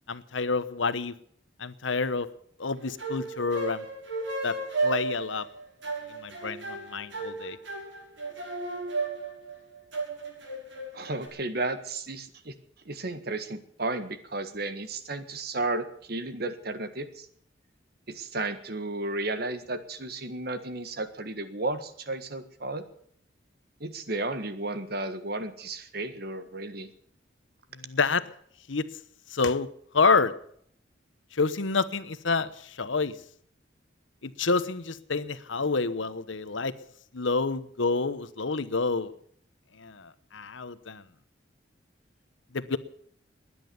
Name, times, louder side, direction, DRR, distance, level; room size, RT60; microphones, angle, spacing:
voice 1, 0.1-1.1 1.6-2.3 2.6-3.9 4.4-4.5 4.8-5.5 6.1-7.6 27.7-28.2 28.7-28.8 29.3-29.7 29.9-30.3 31.3-33.1 34.2-36.7 37.1-39.1 39.7-41.0 42.5-42.8, left 4 dB, 90° left, 14 dB, 1.1 m, -28 dB
sound 1, 2.8-11.3, right 3 dB, 75° right, 6.4 m, -34 dB
voice 2, 10.9-12.5 12.8-17.3 18.1-22.9 23.8-26.9, right 2 dB, 55° right, 10 dB, 1.6 m, -33 dB
20.5 x 10.0 x 7.0 m, 0.63 s
head